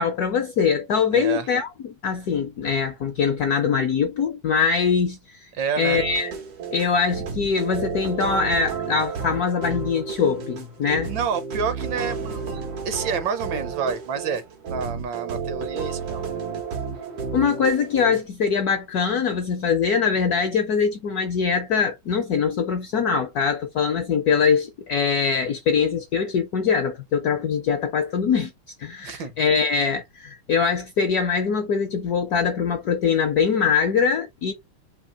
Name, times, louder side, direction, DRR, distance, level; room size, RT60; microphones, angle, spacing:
voice 1, 0.0-1.7 2.0-5.5 5.8-6.3 6.7-11.1 17.3-28.5 28.8-34.5, left 6 dB, 70° left, 0.9 m, -23 dB
voice 2, 1.1-1.5 5.5-6.0 11.1-16.2 29.0-29.3, right 6 dB, 65° right, 1.3 m, -29 dB
sound 1, 5.9-18.2, right 5 dB, 85° right, 2.3 m, -32 dB
4.6 x 2.8 x 3.9 m
omnidirectional pair, 2.4 m